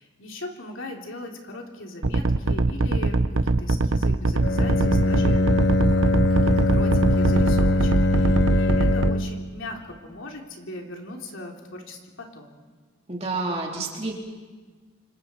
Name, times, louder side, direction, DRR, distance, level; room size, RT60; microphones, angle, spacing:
voice 1, 0.0-5.5 5.8-6.0 6.4-12.5, left 1 dB, 75° left, 1 dB, 3.3 m, -39 dB
sound 1, 2.0-9.1, right 2 dB, 80° right, 0.9 m, -22 dB
Bowed string instrument, 4.4-9.5, left 2 dB, 60° left, 1.0 m, -22 dB
voice 2, 13.1-14.1, right 3 dB, 30° right, -1 dB, 3.6 m, -29 dB
29.0 x 26.5 x 4.4 m, 1.4 s
head